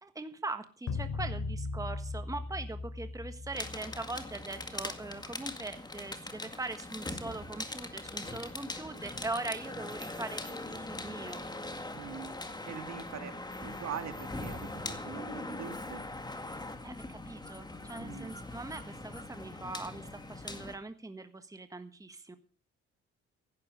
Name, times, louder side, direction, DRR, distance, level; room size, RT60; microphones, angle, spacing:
voice 1, 0.0-11.4 16.8-22.4, right 2 dB, 10° right, 9 dB, 1.4 m, -41 dB
sound 1, 0.9-5.3, left 3 dB, 60° left, 3.3 m, -38 dB
sound 2, 3.5-20.8, left 2 dB, 15° left, 2.0 m, -41 dB
voice 2, 11.9-12.4 12.7-13.3 13.6-16.0 18.0-18.3, right 8 dB, 60° right, 8 dB, 2.4 m, -43 dB
15.5 x 12.0 x 5.0 m, 0.40 s
cardioid pair, 90°, 30 cm